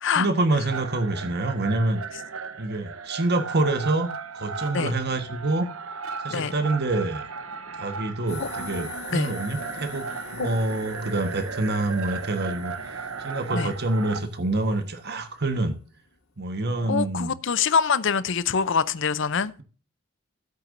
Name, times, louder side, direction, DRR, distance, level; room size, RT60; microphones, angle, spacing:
voice 1, 0.1-2.0 2.6-4.1 4.3-5.7 6.2-7.2 7.7-15.8 16.4-17.3, right 2 dB, 50° right, 1.3 m, -26 dB
sound 1, 0.7-14.2, right 5 dB, 80° right, 1.0 m, -36 dB
sound 2, 8.3-15.9, left 4 dB, 90° left, 2.3 m, -43 dB
voice 2, 16.9-19.5, left 6 dB, 60° left, 0.6 m, -24 dB
15.0 x 8.3 x 2.6 m
head